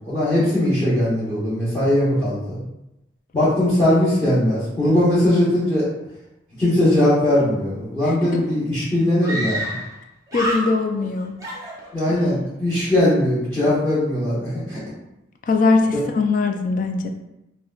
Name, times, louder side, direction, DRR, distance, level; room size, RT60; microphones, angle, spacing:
voice 1, 0.1-2.6 3.3-5.9 6.6-9.7 11.9-14.8, left 1 dB, 15° left, -10 dB, 0.9 m, -20 dB
Screaming, 8.4-8.5 9.2-10.0 10.3-11.1 11.4-12.3, equal, 20° right, 0.6 m, -28 dB
voice 2, 10.3-11.4 12.1-12.2 15.5-17.1, left 3 dB, 45° left, 4 dB, 0.3 m, -21 dB
4.4 x 2.1 x 2.3 m, 0.91 s
head